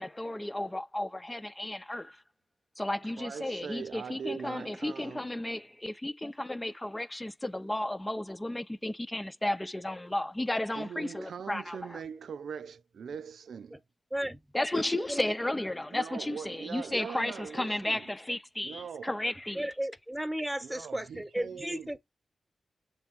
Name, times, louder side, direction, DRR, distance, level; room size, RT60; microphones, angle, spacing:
voice 1, 0.0-2.2 2.8-12.0 14.5-19.7, left 1 dB, 20° left, 0.7 m, -33 dB
voice 2, 3.2-5.3 10.8-13.8 15.9-18.1 18.6-19.1 20.6-22.0, right 7 dB, 80° right, 0.5 m, -41 dB
voice 3, 19.5-22.0, right 1 dB, 10° right, 1.2 m, -34 dB
7.1 x 3.5 x 4.2 m
cardioid pair, 55°, 0 cm